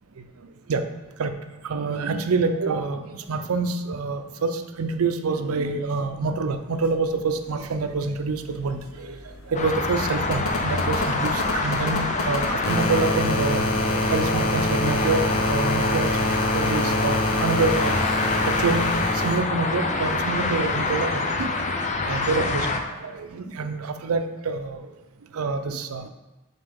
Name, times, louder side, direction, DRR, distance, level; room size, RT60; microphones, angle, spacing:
voice 1, 1.6-9.2 9.5-18.0 18.5-21.5 22.1-22.7 23.0-24.9 25.3-26.1, right 4 dB, 90° right, 8 dB, 0.5 m, -27 dB
sound 1, 8.2-8.3 8.5-19.4 20.8-20.9, left 1 dB, 75° left, 0.8 m, -26 dB
sound 2, 9.5-22.8, left 3 dB, 35° left, 0.5 m, -26 dB
6.8 x 4.3 x 3.6 m, 1.0 s
head